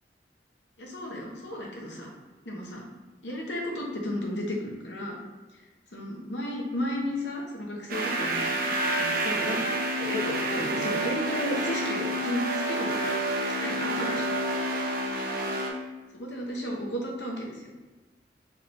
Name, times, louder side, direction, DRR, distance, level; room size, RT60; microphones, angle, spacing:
voice 1, 0.8-2.1 2.4-2.8 3.2-5.2 5.9-9.7 10.0-13.0 13.5-14.3 16.1-17.7, left 1 dB, 85° left, -1 dB, 1.0 m, -33 dB
sound 1, 7.9-15.7, right 1 dB, 55° right, 0.6 m, -29 dB
4.7 x 3.2 x 3.5 m, 1.2 s
head